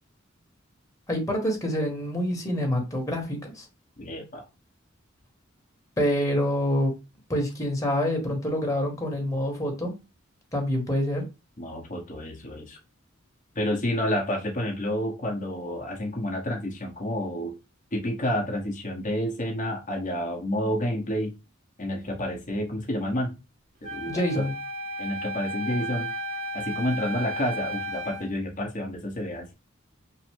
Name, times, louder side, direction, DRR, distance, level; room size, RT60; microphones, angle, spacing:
voice 1, 1.1-3.7 6.0-6.9 7.3-9.9 10.5-11.2 24.1-24.5, equal, 15° left, 1.2 m, -26 dB
voice 2, 4.0-4.4 11.6-12.8 13.5-17.6 17.9-21.3 21.8-23.3 23.8-24.5 25.0-26.1 26.5-29.5, left 1 dB, 40° left, 1.0 m, -29 dB
Wind instrument woodwind instrument, 23.8-28.3, equal, 40° right, 0.7 m, -34 dB
5.6 x 2.0 x 3.5 m
head